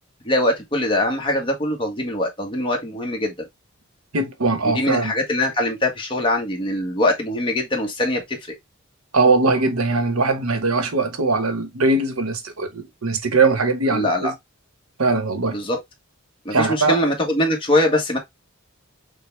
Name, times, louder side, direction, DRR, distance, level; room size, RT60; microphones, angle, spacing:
voice 1, 0.2-3.3 4.7-8.2 8.5-8.6 13.9-14.3 15.5-15.8 16.4-18.2, left 1 dB, 25° left, 1.2 m, -22 dB
voice 2, 4.1-5.1 9.1-14.3 15.0-15.6 16.5-17.0, right 3 dB, 75° right, 1.1 m, -20 dB
6.5 x 2.3 x 3.2 m
head